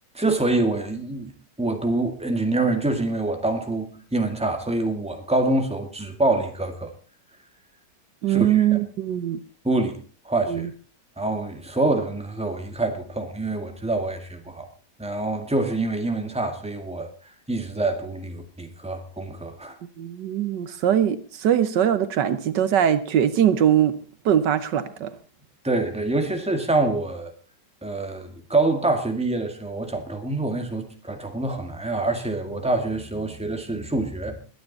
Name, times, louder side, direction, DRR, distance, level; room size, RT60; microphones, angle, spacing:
voice 1, 0.1-1.3 1.6-6.9 8.3-8.7 9.6-10.0 10.3-10.7 11.2-14.7 15.0-17.1 17.5-19.8 25.6-27.3 27.8-34.4, right 2 dB, 5° right, 1.8 m, -26 dB
voice 2, 8.2-9.4 10.5-10.7 20.0-24.0 24.2-25.1, right 10 dB, 75° right, 1.5 m, -21 dB
22.5 x 9.4 x 4.1 m
omnidirectional pair, 1.9 m